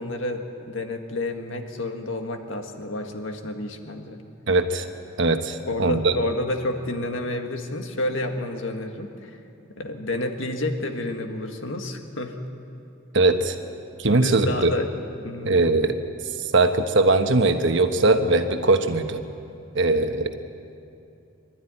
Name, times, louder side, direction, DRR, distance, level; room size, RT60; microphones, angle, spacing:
voice 1, 0.0-4.2 5.7-9.4 9.8-12.4 14.2-14.9 15.2-15.5, left 1 dB, 65° left, 4 dB, 1.8 m, -30 dB
voice 2, 4.5-4.8 5.2-6.1 13.1-13.5 14.0-14.7 15.4-15.9 16.5-19.2 19.7-20.3, right 2 dB, 60° right, 7 dB, 1.2 m, -20 dB
24.0 x 12.5 x 9.9 m, 2.7 s
head